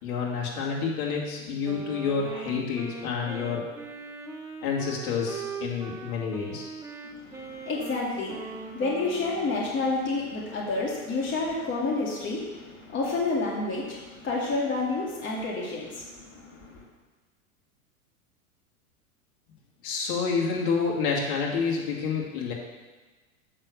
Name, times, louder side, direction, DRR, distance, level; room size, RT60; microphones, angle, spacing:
voice 1, 0.0-3.6 4.6-6.6 19.8-22.5, left 5 dB, 50° left, -3 dB, 2.5 m, -28 dB
Wind instrument woodwind instrument, 1.6-9.8, right 3 dB, 5° right, 0.9 m, -40 dB
voice 2, 7.0-16.9, left 3 dB, 25° left, -3 dB, 2.1 m, -30 dB
7.4 x 6.5 x 6.6 m, 1.2 s
hypercardioid pair, 100°, 44 cm